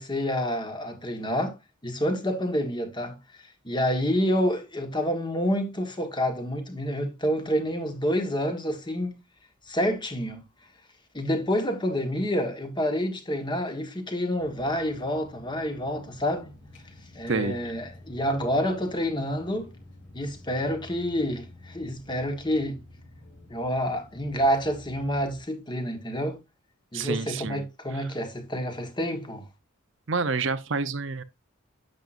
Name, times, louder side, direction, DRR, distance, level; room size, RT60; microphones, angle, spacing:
voice 1, 0.0-1.5 1.8-3.2 3.6-9.1 9.7-10.4 11.1-16.5 17.1-19.7 20.1-22.8 23.5-26.4 26.9-29.4, equal, 20° left, 1.5 m, -28 dB
sound 1, 14.4-25.4, left 1 dB, 60° left, 3.9 m, -49 dB
voice 2, 26.9-27.6 27.9-28.1 30.1-31.2, right 4 dB, 65° right, 0.7 m, -28 dB
10.5 x 7.6 x 2.6 m
head